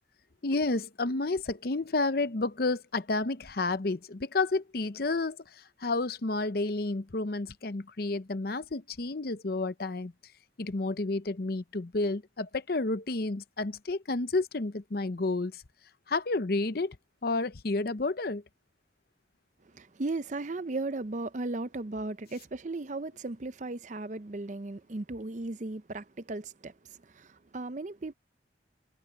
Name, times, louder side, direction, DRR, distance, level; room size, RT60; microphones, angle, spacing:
voice 1, 0.4-10.1 10.6-15.6 16.1-17.0 17.2-18.4, left 3 dB, 55° left, 0.7 m, -30 dB
voice 2, 19.7-28.1, right 2 dB, 40° right, 0.6 m, -36 dB
head